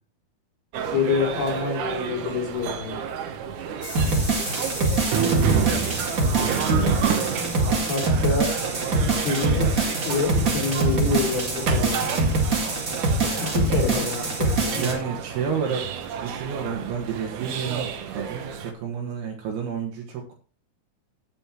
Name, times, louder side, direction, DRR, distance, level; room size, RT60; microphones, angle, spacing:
sound 1, 0.7-18.7, right 8 dB, 65° right, 2.3 m, -30 dB
voice 1, 0.9-3.0 7.9-8.5 9.0-12.3 13.4-14.9, left 5 dB, 75° left, 4 dB, 4.5 m, -27 dB
sound 2, 3.8-8.8, left 1 dB, 35° left, 0.3 m, -39 dB
sound 3, 3.9-14.9, right 2 dB, 30° right, 1.9 m, -24 dB
voice 2, 6.4-7.6 9.5-9.7 13.9-14.1 14.7-15.8 16.2-20.3, right 7 dB, 80° right, 0 dB, 3.6 m, -30 dB
16.0 x 5.5 x 4.5 m, 0.36 s
omnidirectional pair, 4.5 m